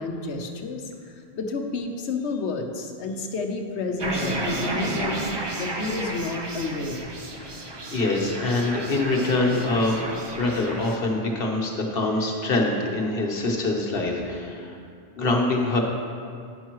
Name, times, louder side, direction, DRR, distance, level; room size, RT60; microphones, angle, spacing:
voice 1, 0.0-5.2 5.6-7.1, left 3 dB, 85° left, 4 dB, 1.1 m, -30 dB
sound 1, 4.0-11.0, right 1 dB, 30° right, 0.6 m, -32 dB
voice 2, 7.4-10.0 10.3-14.8 15.2-15.8, left 2 dB, 60° left, 0 dB, 1.3 m, -25 dB
10.0 x 9.8 x 3.1 m, 2.3 s
omnidirectional pair, 1.1 m